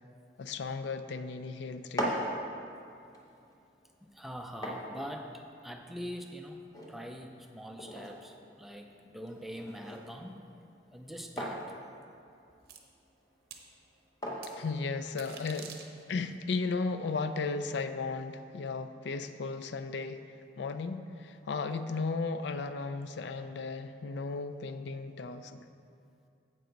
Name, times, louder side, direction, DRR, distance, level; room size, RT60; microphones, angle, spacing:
voice 1, 0.4-2.3 14.5-15.8 16.1-20.2 20.6-25.7, left 4 dB, 70° left, 10 dB, 0.4 m, -35 dB
sound 1, 1.7-15.6, equal, 20° left, 0.9 m, -42 dB
voice 2, 4.0-10.4 10.9-11.6, equal, ahead, 3 dB, 0.4 m, -43 dB
sound 2, 12.7-12.8 13.5-13.6 14.4-14.5 15.1-16.3, right 7 dB, 55° right, 0.8 m, -47 dB
9.3 x 7.7 x 3.9 m, 2.5 s
head